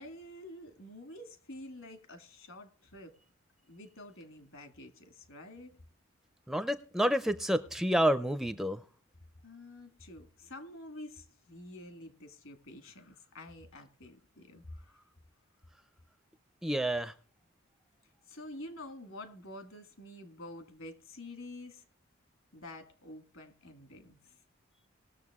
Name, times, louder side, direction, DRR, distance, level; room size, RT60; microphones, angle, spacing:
voice 1, 0.0-3.1 3.7-5.8 9.4-15.0 18.3-21.8 22.5-24.4, left 1 dB, 65° left, 1.8 m, -48 dB
voice 2, 6.5-8.8 16.6-17.1, equal, ahead, 0.4 m, -29 dB
20.0 x 6.9 x 3.5 m
head